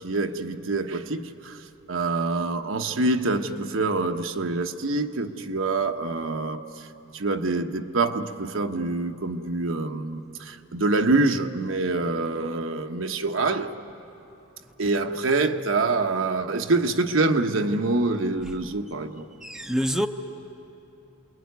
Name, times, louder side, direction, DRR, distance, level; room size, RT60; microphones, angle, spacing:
voice 1, 0.0-1.6 1.9-6.9 7.1-13.7 14.8-19.3, right 3 dB, 70° right, 1.1 m, -26 dB
voice 2, 19.4-20.1, equal, 5° right, 0.7 m, -27 dB
28.5 x 22.0 x 9.5 m
head